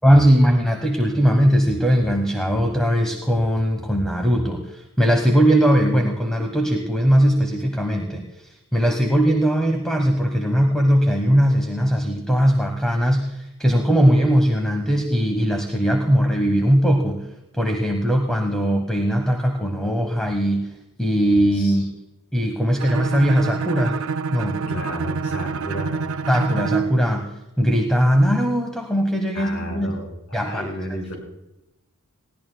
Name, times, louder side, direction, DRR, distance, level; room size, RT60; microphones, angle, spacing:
voice 1, 0.0-17.3 17.5-20.7 21.0-21.8 22.3-24.0 24.3-24.6 26.3-27.3 27.6-29.9 30.3-30.6, equal, 5° left, 4 dB, 1.2 m, -19 dB
voice 2, 21.5-21.9 24.7-25.9 29.3-31.2, equal, 75° left, 2 dB, 5.6 m, -32 dB
Bowed string instrument, 22.8-27.0, right 5 dB, 65° right, 0.5 m, -27 dB
20.0 x 16.5 x 2.3 m, 0.93 s
head